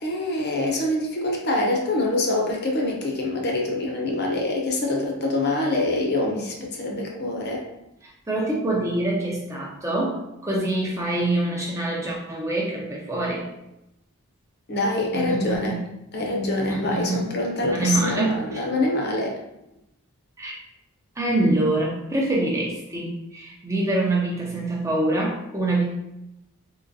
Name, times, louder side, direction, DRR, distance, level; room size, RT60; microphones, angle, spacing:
voice 1, 0.0-7.6 14.7-15.8 16.1-19.4, left 2 dB, 45° left, 0 dB, 0.7 m, -25 dB
voice 2, 8.0-13.5 15.1-15.8 16.7-17.3 17.7-18.6 20.4-20.5 21.2-25.9, right 2 dB, 15° right, -3 dB, 0.5 m, -25 dB
3.8 x 2.9 x 2.7 m, 0.87 s
head